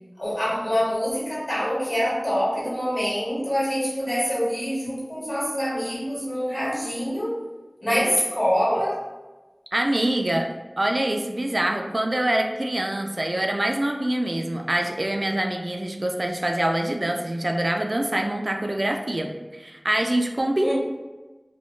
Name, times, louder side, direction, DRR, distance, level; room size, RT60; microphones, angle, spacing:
voice 1, 0.2-7.4 7.8-9.0 20.6-20.7, equal, 45° left, -7 dB, 1.4 m, -25 dB
voice 2, 9.7-10.5 10.8-20.7, right 1 dB, 50° right, 3 dB, 0.3 m, -25 dB
3.0 x 2.2 x 3.1 m, 1.2 s
wide cardioid pair, 50°, 0 cm